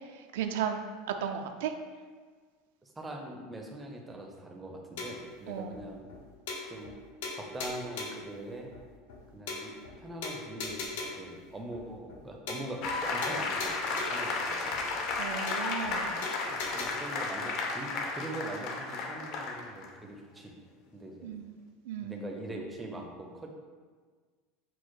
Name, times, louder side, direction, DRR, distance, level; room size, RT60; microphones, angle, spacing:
voice 1, 0.1-0.8 1.2-1.7 5.5-5.7 15.2-16.3 21.2-21.6 21.9-22.2, right 8 dB, 80° right, 6 dB, 0.3 m, -35 dB
voice 2, 2.8-6.1 6.7-6.9 7.3-8.7 9.3-15.0 16.5-20.5 20.9-21.3 22.0-23.5, right 1 dB, 10° right, 1 dB, 0.4 m, -42 dB
sound 1, 5.0-5.3 5.7-5.8 6.1-6.2 6.5-7.0 7.2-8.3 8.7-8.8 9.1-9.2 9.5-9.9 10.2-11.3 11.7-11.8 12.1-12.2 12.5-13.0 13.2-14.3 14.7-14.8 15.1-15.2 15.5-15.9 16.2-16.9, left 3 dB, 90° left, 0.8 m, -39 dB
sound 2, 12.8-19.9, left 3 dB, 45° left, 0.5 m, -33 dB
4.5 x 2.0 x 4.5 m, 1.5 s
supercardioid pair, 165°, 0 cm